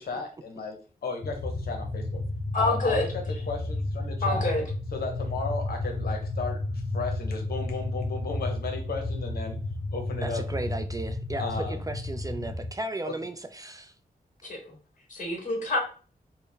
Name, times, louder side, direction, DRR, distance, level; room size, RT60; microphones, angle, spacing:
voice 1, 0.0-2.2 2.5-4.5 4.9-6.6 6.9-9.6 9.9-10.4 11.4-11.8 13.0-13.1, left 4 dB, 85° left, 0.8 m, -35 dB
sound 1, 1.2-12.7, left 2 dB, 25° left, 0.7 m, -32 dB
voice 2, 2.5-3.0 4.2-4.6 14.4-14.6 15.1-15.8, left 2 dB, 55° left, 1.6 m, -27 dB
voice 3, 10.2-13.9, right 2 dB, 20° right, 0.3 m, -35 dB
4.3 x 2.1 x 3.3 m
wide cardioid pair, 90°, 16 cm